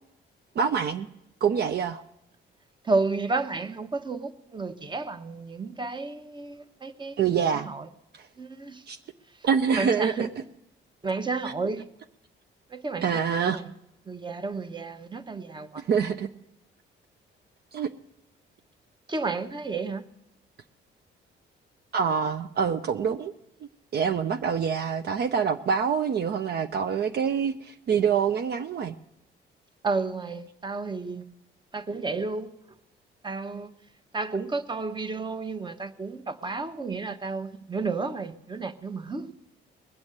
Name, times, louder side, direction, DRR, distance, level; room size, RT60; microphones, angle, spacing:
voice 1, 0.6-1.1 1.4-2.0 7.2-7.7 8.2-8.3 8.9-9.0 9.4-10.2 13.0-13.6 15.8-16.3 17.7-17.9 21.9-23.3 23.9-28.9, right 7 dB, 55° right, 0.7 m, -25 dB
voice 2, 2.8-7.9 8.4-8.8 9.7-10.3 11.0-11.9 12.7-13.1 13.4-13.6 14.1-15.8 19.1-20.0 29.8-31.2 31.7-32.5 33.2-33.7 34.1-39.3, right 3 dB, 25° right, 1.1 m, -31 dB
20.5 x 7.1 x 8.0 m
cardioid pair, 90°, 20 cm